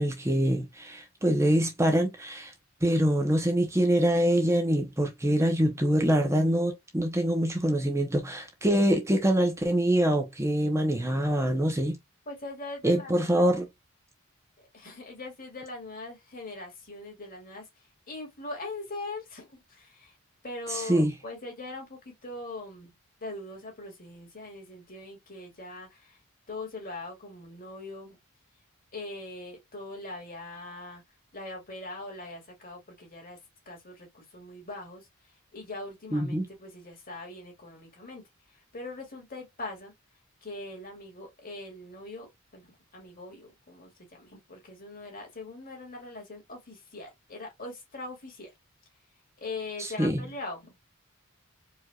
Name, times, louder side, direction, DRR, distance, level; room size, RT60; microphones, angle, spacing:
voice 1, 0.0-2.5 2.8-12.0 12.8-13.7 20.7-21.1 36.1-36.5 49.8-50.2, right 1 dB, 15° right, 0.7 m, -25 dB
voice 2, 12.3-13.6 14.6-17.7 18.1-20.2 20.4-22.9 23.2-26.2 26.5-28.2 28.9-31.0 31.3-33.4 33.7-35.1 35.5-38.2 38.7-39.9 40.4-42.7 42.9-48.5 49.4-50.8, left 2 dB, 45° left, 2.2 m, -41 dB
4.7 x 2.7 x 2.3 m
head